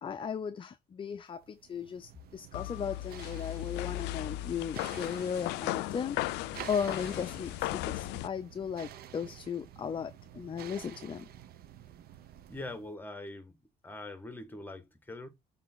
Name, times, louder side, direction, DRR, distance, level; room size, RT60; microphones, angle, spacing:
voice 1, 0.0-11.3, left 7 dB, 30° left, 0.6 m, -36 dB
sound 1, 1.4-12.9, right 11 dB, 65° right, 1.1 m, -50 dB
sound 2, 2.5-8.3, left 18 dB, 90° left, 0.4 m, -36 dB
voice 2, 12.5-13.6 13.8-15.3, left 2 dB, 10° left, 2.0 m, -43 dB
7.4 x 4.0 x 4.1 m
cardioid pair, 110°, 17 cm